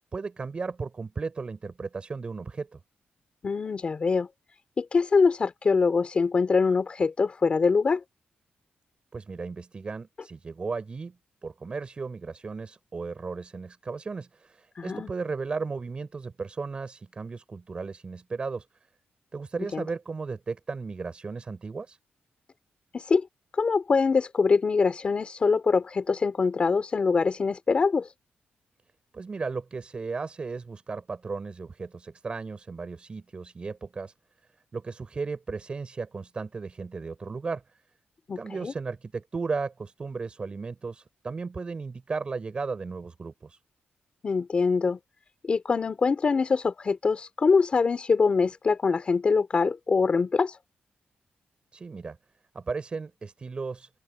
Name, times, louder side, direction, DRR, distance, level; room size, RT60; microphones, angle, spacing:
voice 1, 0.1-2.8 9.1-11.2 11.4-18.7 19.3-22.0 29.1-34.1 34.7-37.8 38.4-43.6 51.7-52.2 52.5-53.9, right 4 dB, 30° right, 5.3 m, -35 dB
voice 2, 3.4-4.3 4.8-8.0 14.8-15.1 19.7-19.8 22.9-23.3 23.5-28.1 38.3-38.7 44.2-45.0 45.4-50.6, left 4 dB, 30° left, 3.5 m, -24 dB
open air
wide cardioid pair, 175°, 4 cm